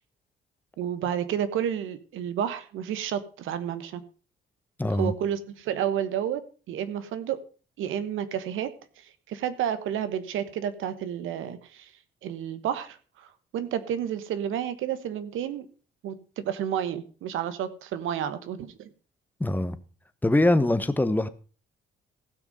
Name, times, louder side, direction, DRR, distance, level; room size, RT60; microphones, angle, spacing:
voice 1, 0.8-4.0 4.9-6.4 6.7-7.4 7.8-8.7 9.0-11.9 12.2-15.6 16.0-18.9, right 9 dB, 85° right, 12 dB, 1.3 m, -31 dB
voice 2, 4.8-5.1 19.4-19.8 20.2-21.3, left 1 dB, 10° left, 11 dB, 1.0 m, -23 dB
15.5 x 6.3 x 5.4 m, 0.38 s
cardioid pair, 90°, 20 cm